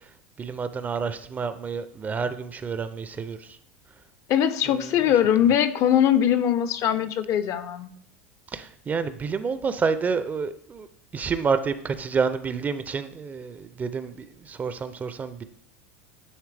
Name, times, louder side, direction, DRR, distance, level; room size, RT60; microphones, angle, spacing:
voice 1, 0.4-3.4 8.5-10.9 11.1-15.4, right 5 dB, 25° right, 12 dB, 0.4 m, -29 dB
voice 2, 4.3-7.9, left 10 dB, 50° left, 12 dB, 0.5 m, -21 dB
9.4 x 3.2 x 3.3 m, 0.63 s
hypercardioid pair, 100°, 7 cm